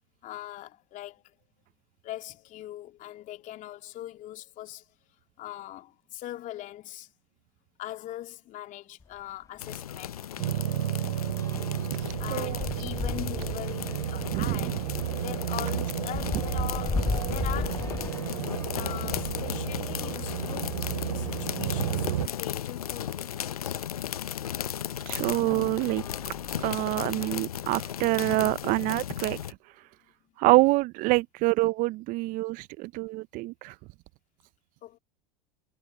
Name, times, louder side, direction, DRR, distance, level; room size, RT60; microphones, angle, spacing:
voice 1, 0.2-1.2 2.0-4.8 5.4-7.1 7.8-10.1 12.2-14.8 15.2-17.9 18.7-23.7 34.8-35.0, left 14 dB, 45° left, 2.7 m, -41 dB
sound 1, 9.0-9.2 9.5-9.6 10.0-19.5 20.2-21.5 22.2-22.3 22.6-22.7 24.4-24.5 25.1-25.3 25.8-27.0, left 4 dB, 15° left, 1.6 m, -37 dB
sound 2, 9.6-29.5, left 10 dB, 85° left, 0.6 m, -35 dB
sound 3, 10.4-22.3, right 14 dB, 75° right, 2.6 m, -32 dB
voice 2, 12.3-12.7 14.3-14.7 25.1-29.4 30.4-33.7, right 21 dB, 50° right, 0.7 m, -26 dB
hypercardioid pair, 85°, 18 cm